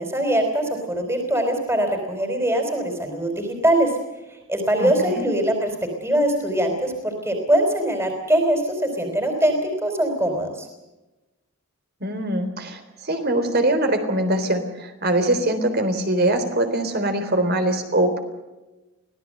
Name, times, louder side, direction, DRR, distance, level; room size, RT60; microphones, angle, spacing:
voice 1, 0.0-3.9 4.3-5.7 6.0-10.7, right 1 dB, 10° right, 4 dB, 4.4 m, -22 dB
voice 2, 4.8-5.3 12.0-18.2, right 1 dB, 50° right, 7 dB, 3.7 m, -22 dB
25.0 x 18.0 x 7.8 m, 1.1 s
head